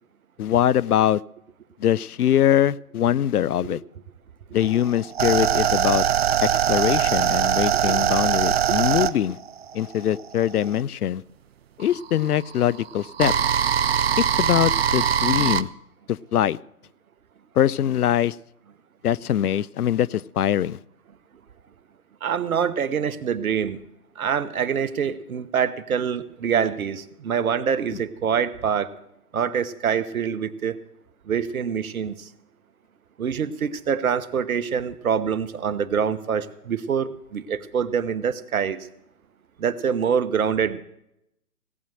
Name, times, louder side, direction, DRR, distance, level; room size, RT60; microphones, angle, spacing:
voice 1, 0.4-1.2 1.8-3.8 4.5-6.1 6.4-9.4 9.7-11.2 11.8-13.3 14.2-15.7 16.1-16.6 17.6-18.4 19.0-20.8, left 10 dB, 75° left, 23 dB, 0.6 m, -22 dB
sound 1, 4.6-10.8 11.8-15.6, right 9 dB, 45° right, 0.4 m, -22 dB
voice 2, 22.2-23.8 24.2-28.9 29.3-30.8 31.3-32.3 33.2-38.9 39.6-40.8, right 7 dB, 65° right, 14 dB, 1.1 m, -25 dB
17.5 x 8.7 x 6.3 m, 0.82 s
hypercardioid pair, 140°, 46 cm